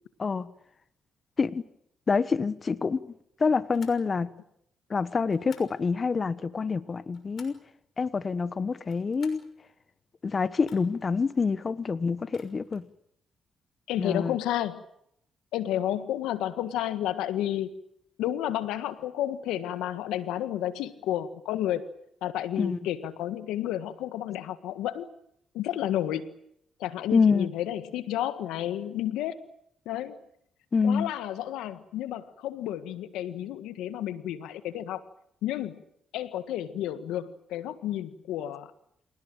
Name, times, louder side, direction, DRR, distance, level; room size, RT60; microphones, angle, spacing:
voice 1, 0.2-0.5 1.4-1.6 2.1-3.1 3.4-4.3 4.9-7.6 8.0-9.4 10.2-12.9 14.0-14.4 22.6-22.8 27.1-27.5 30.7-31.1, left 5 dB, 45° left, 1.2 m, -26 dB
sound 1, 3.7-4.1 5.3-5.8 6.8-7.7 8.8-9.5 10.6-11.1 12.2-12.9, left 6 dB, 60° left, 6.1 m, -54 dB
voice 2, 13.9-14.8 15.5-17.7 18.2-21.8 22.2-25.1 25.5-26.4 26.8-29.4 29.8-30.2 30.8-35.0 35.4-35.8 36.1-38.7, left 12 dB, 90° left, 1.6 m, -31 dB
27.0 x 18.0 x 9.0 m
supercardioid pair, 60°, 0 cm